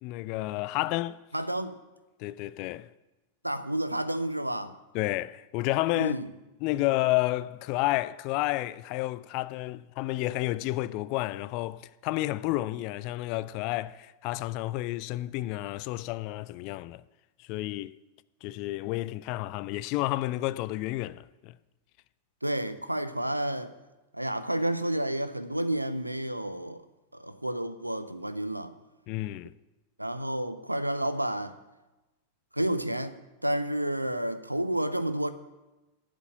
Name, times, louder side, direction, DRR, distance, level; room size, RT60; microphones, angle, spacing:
voice 1, 0.0-1.2 2.2-2.9 4.9-6.2 6.6-17.0 17.4-17.9 18.4-21.5 29.1-29.5, left 17 dB, 45° left, 0.3 m, -31 dB
voice 2, 1.3-1.8 3.4-4.7 5.9-6.3 22.4-23.7 24.1-26.8 27.1-28.7 30.0-31.6 32.5-33.2 33.4-35.3, right 1 dB, 85° right, 0.5 m, -30 dB
11.0 x 5.2 x 8.5 m
figure-of-eight pair, 90°, 0 cm